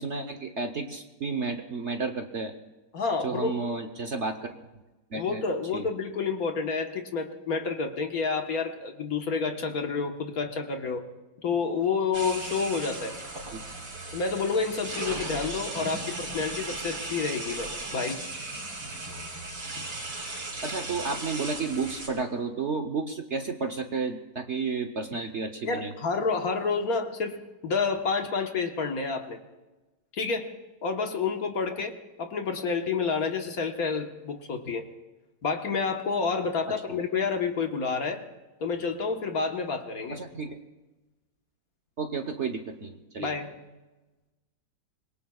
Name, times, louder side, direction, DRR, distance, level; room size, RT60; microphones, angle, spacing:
voice 1, 0.0-2.5 3.2-4.5 5.1-5.4 5.7-5.9 13.5-13.6 15.8-15.9 20.6-25.9 31.7-31.8 36.7-36.8 40.1-40.6 42.0-43.4, right 4 dB, 50° right, 6 dB, 1.0 m, -32 dB
voice 2, 2.9-3.6 5.1-11.0 11.4-13.2 14.1-18.2 25.6-27.4 27.6-29.4 30.1-30.5 30.8-34.8 35.4-38.2 38.6-40.2 43.2-43.5, left 4 dB, 55° left, 4 dB, 1.7 m, -29 dB
sound 1, 12.1-22.1, right 2 dB, 75° right, 4.0 m, -37 dB
25.5 x 22.0 x 2.4 m, 1.1 s
omnidirectional pair, 1.9 m